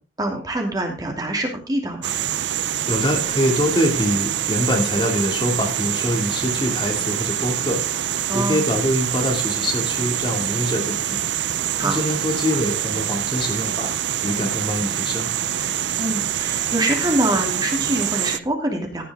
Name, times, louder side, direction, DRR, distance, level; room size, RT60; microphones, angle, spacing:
voice 1, 0.2-2.1 8.3-8.7 11.8-12.0 16.0-19.0, right 1 dB, 20° right, 2 dB, 2.7 m, -24 dB
sound 1, 2.0-18.4, right 10 dB, 80° right, 0.6 m, -25 dB
voice 2, 2.9-7.8 8.3-11.2 11.8-13.9 14.2-15.3, equal, 30° left, 2 dB, 2.6 m, -24 dB
15.0 x 9.4 x 3.6 m, 0.32 s
head